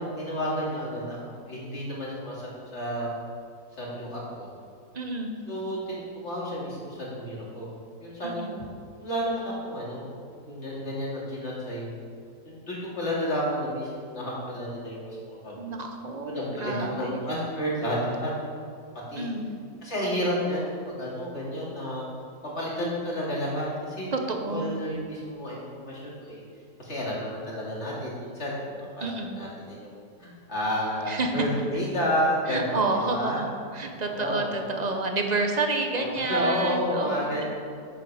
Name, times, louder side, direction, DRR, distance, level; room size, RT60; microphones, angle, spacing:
voice 1, 0.2-3.1 3.8-4.5 5.5-7.7 8.0-8.7 8.9-10.2 10.5-11.9 12.4-15.6 16.2-18.3 19.1-19.3 19.8-22.1 22.4-24.1 24.5-26.4 26.8-33.4 33.9-34.5 35.9-37.4, equal, 40° left, -5 dB, 2.8 m, -31 dB
voice 2, 4.9-5.4 8.2-8.5 15.6-17.2 19.2-19.5 24.1-24.8 29.0-29.4 31.1-31.3 32.5-33.5 33.7-37.4, right 3 dB, 35° right, 3 dB, 0.7 m, -29 dB
8.2 x 7.5 x 6.1 m, 2.3 s
omnidirectional pair, 1.7 m